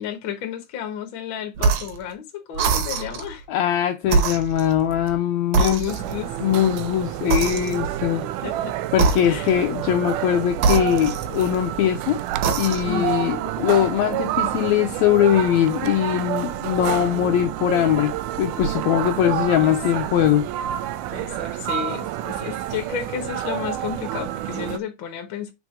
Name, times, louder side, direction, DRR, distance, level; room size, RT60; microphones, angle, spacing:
voice 1, 0.0-3.4 5.5-6.3 8.2-8.8 9.2-9.5 12.9-13.2 19.6-19.7 21.1-25.5, left 8 dB, 50° left, 1.6 m, -32 dB
sound 1, 1.6-2.0 2.5-3.3 4.0-5.2 5.5-6.3 7.3-8.0 8.9-9.7 10.6-11.7 12.3-13.0, right 5 dB, 70° right, 2.2 m, -24 dB
voice 2, 3.5-5.9 6.4-8.2 8.9-12.2 12.6-18.1 18.4-20.5, left 11 dB, 80° left, 1.7 m, -21 dB
sound 2, 5.9-24.8, right 13 dB, 90° right, 2.1 m, -29 dB
4.9 x 4.3 x 5.0 m
omnidirectional pair, 3.6 m